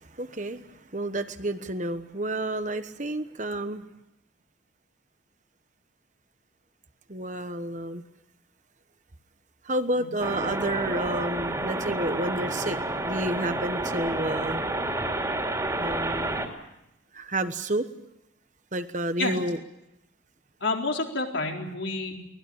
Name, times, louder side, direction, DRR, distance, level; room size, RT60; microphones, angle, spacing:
voice 1, 0.0-3.8 7.1-8.0 9.6-12.8 13.0-14.6 15.8-16.3 17.1-17.9 18.7-19.6, right 1 dB, 40° right, 10 dB, 1.2 m, -30 dB
sound 1, 10.2-16.5, right 1 dB, 15° right, 2.9 m, -30 dB
voice 2, 20.6-22.2, left 3 dB, 70° left, 1 dB, 4.3 m, -29 dB
23.5 x 19.0 x 8.7 m, 0.86 s
head